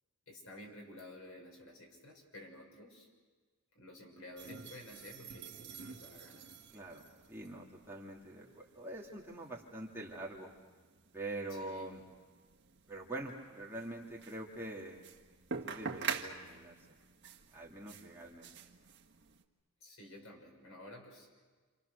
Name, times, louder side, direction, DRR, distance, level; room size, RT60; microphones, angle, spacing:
voice 1, 0.3-3.1 3.7-6.4 11.5-11.9 19.8-21.3, left 1 dB, 70° left, 1 dB, 6.8 m, -52 dB
sound 1, 4.4-19.4, right 5 dB, 50° right, 1.8 m, -47 dB
voice 2, 6.7-10.5 11.1-12.0 12.9-15.1 15.6-17.0 17.5-18.5, right 2 dB, 10° right, -3 dB, 2.7 m, -45 dB
29.5 x 27.5 x 6.7 m, 1.4 s
head